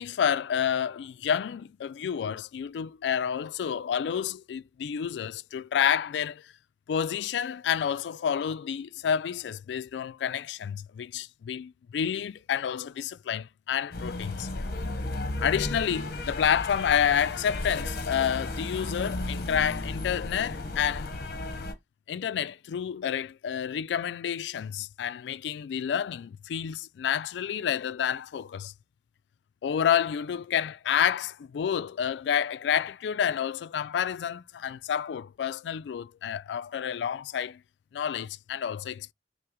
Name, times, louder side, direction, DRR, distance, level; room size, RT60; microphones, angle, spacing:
voice 1, 0.0-6.4 6.9-14.5 15.4-21.1 22.1-28.7 29.6-37.6 37.9-39.1, left 8 dB, 75° left, 0.3 m, -29 dB
sound 1, 13.9-21.7, left 2 dB, 60° left, 0.9 m, -34 dB
5.6 x 2.1 x 3.6 m
head